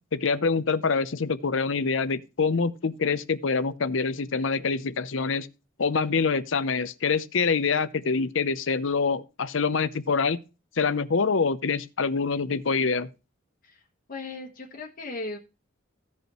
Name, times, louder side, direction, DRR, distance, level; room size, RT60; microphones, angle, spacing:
voice 1, 0.1-5.5 5.8-10.4 10.8-13.1, left 5 dB, 70° left, 0.7 m, -25 dB
voice 2, 14.1-15.4, left 2 dB, 45° left, 1.3 m, -37 dB
16.0 x 5.3 x 3.0 m
head